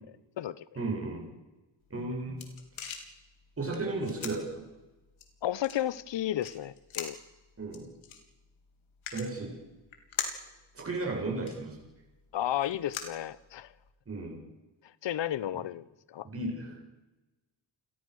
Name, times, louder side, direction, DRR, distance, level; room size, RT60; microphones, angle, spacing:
voice 1, 0.8-1.2 1.9-2.4 3.6-4.5 7.6-7.9 9.1-9.5 10.7-11.8 14.1-14.4 16.3-16.8, right 2 dB, 30° right, 0 dB, 7.9 m, -34 dB
sound 1, 1.8-13.9, left 6 dB, 80° left, 4.0 m, -44 dB
voice 2, 5.4-7.2 12.3-13.7 15.0-16.3, left 12 dB, 65° left, 19 dB, 1.1 m, -33 dB
29.5 x 21.5 x 6.6 m, 1.1 s
wide cardioid pair, 155°, 48 cm